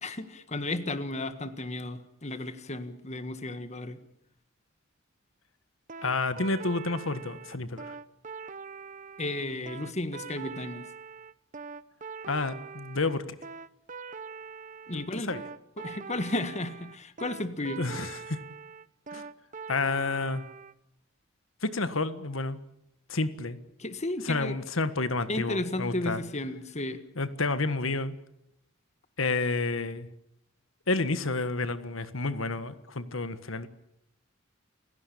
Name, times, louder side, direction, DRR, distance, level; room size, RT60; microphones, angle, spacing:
voice 1, 0.0-4.0 9.2-10.8 14.9-15.3 15.8-17.8 23.8-24.6 25.3-27.0, left 2 dB, 35° left, 10 dB, 1.6 m, -33 dB
sound 1, 5.9-20.7, right 5 dB, 40° right, 0.9 m, -43 dB
voice 2, 6.0-7.9 12.3-13.2 14.9-15.4 17.8-18.4 19.1-19.2 19.7-20.4 21.6-22.6 23.1-23.6 24.2-26.2 27.2-28.2 29.2-30.1 30.9-33.7, left 3 dB, 80° left, 12 dB, 1.6 m, -30 dB
30.0 x 17.0 x 8.6 m, 0.80 s
head